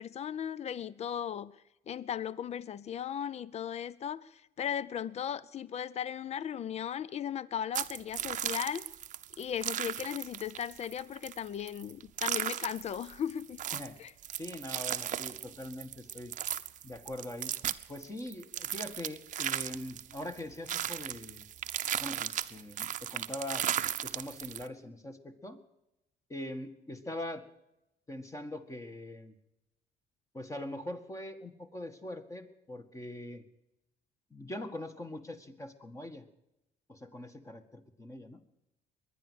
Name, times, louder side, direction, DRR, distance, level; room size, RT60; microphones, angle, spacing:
voice 1, 0.0-1.5 1.9-8.8 9.4-13.6 14.0-14.1, left 9 dB, 40° left, 0.6 m, -37 dB
sound 1, 7.7-24.7, right 10 dB, 50° right, 0.8 m, -36 dB
voice 2, 14.4-16.3 16.8-17.6 17.9-21.4 22.0-23.7 24.0-25.6 26.3-27.5 28.1-29.3 30.3-33.4 34.3-36.2 36.9-38.4, left 1 dB, 20° left, 1.9 m, -42 dB
22.0 x 10.0 x 6.5 m
cardioid pair, 110°, 17 cm